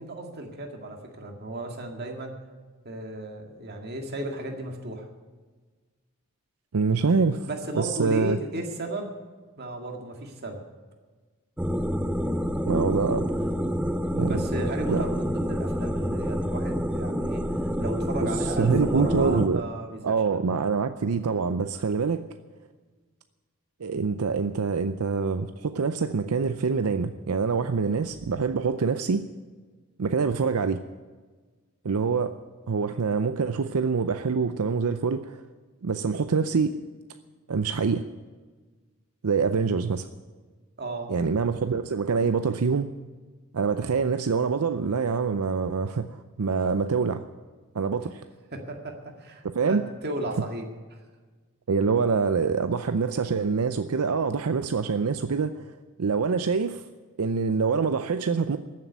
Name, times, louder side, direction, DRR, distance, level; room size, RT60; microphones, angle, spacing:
voice 1, 0.0-2.3 2.8-5.1 7.4-9.1 9.6-10.6 14.2-20.4 40.8-41.1 48.5-50.7, right 1 dB, 45° right, 3 dB, 2.0 m, -34 dB
voice 2, 6.7-7.5 7.8-8.4 12.7-13.5 14.2-14.4 14.9-15.0 18.2-18.3 18.6-19.6 20.0-22.2 23.8-29.2 30.0-30.8 31.8-32.3 32.7-35.4 35.8-36.8 37.5-38.0 39.2-40.1 41.1-42.9 43.5-47.2 47.7-48.2 49.5-49.8 51.7-55.6 56.0-56.8 57.2-58.6, right 5 dB, 80° right, 10 dB, 0.6 m, -25 dB
sound 1, 11.6-19.5, equal, 5° right, 0.5 m, -28 dB
14.0 x 7.6 x 9.4 m, 1.4 s
head